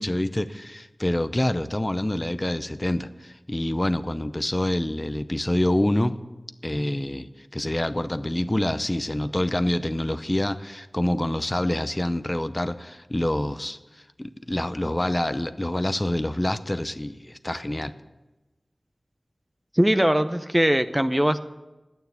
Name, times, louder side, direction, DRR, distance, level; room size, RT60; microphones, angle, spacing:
voice 1, 0.0-6.2 6.6-17.9, left 1 dB, 25° left, 11 dB, 0.6 m, -26 dB
voice 2, 19.7-21.4, equal, 15° right, 11 dB, 0.6 m, -21 dB
9.7 x 9.1 x 9.3 m, 1.1 s
wide cardioid pair, 50°, 0 cm